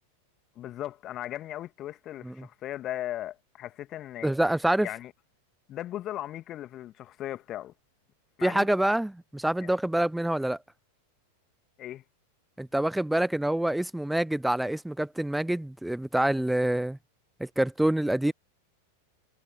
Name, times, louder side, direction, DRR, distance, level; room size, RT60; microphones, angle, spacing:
voice 1, 0.6-4.3 4.8-5.1 5.7-7.7 8.4-8.7 9.6-9.7 11.8-12.0, left 13 dB, 30° left, 2.2 m, -37 dB
voice 2, 4.2-4.9 8.4-10.6 12.6-17.0 17.4-18.3, right 1 dB, 5° right, 0.4 m, -26 dB
figure-of-eight pair, 90°, 0 cm